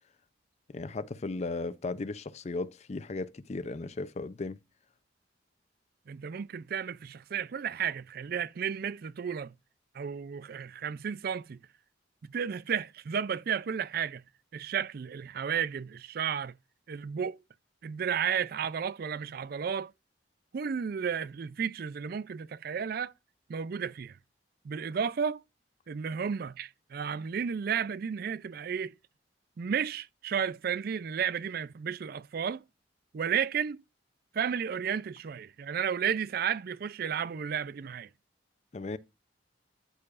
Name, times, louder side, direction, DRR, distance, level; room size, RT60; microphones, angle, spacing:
voice 1, 0.7-4.6 38.7-39.0, left 3 dB, 35° left, 0.5 m, -36 dB
voice 2, 6.1-9.5 9.9-11.6 12.2-14.2 14.5-16.5 16.9-17.4 17.8-19.9 20.5-23.1 23.5-24.2 24.6-25.4 25.9-28.9 29.6-32.6 33.1-33.8 34.3-38.1, right 7 dB, 55° right, 0.4 m, -33 dB
13.0 x 4.8 x 2.4 m
head